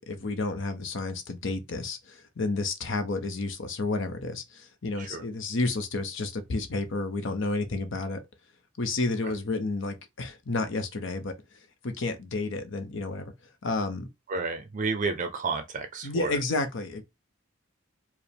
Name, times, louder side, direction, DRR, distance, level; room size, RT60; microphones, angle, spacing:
voice 1, 0.1-8.2 8.8-13.3 13.6-14.1 16.0-17.0, left 3 dB, 70° left, 0.7 m, -31 dB
voice 2, 14.3-16.4, right 4 dB, 40° right, 0.5 m, -31 dB
4.7 x 2.1 x 3.4 m
head